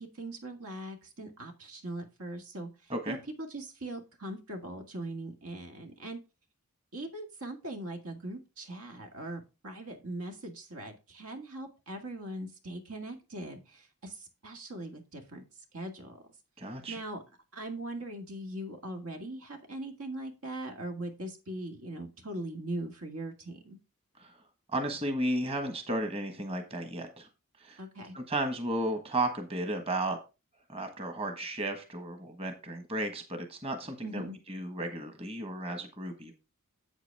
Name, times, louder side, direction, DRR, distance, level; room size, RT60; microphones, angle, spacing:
voice 1, 0.0-6.2 6.9-15.4 15.7-16.2 16.9-17.2 17.5-23.8 27.8-28.2 34.0-34.4, right 1 dB, 85° right, 4 dB, 1.9 m, -40 dB
voice 2, 16.6-17.0 24.2-24.3 24.7-27.3 27.6-27.8 28.1-30.2 30.7-36.3, right 1 dB, 25° right, 5 dB, 1.4 m, -34 dB
8.2 x 8.1 x 3.4 m, 0.28 s
head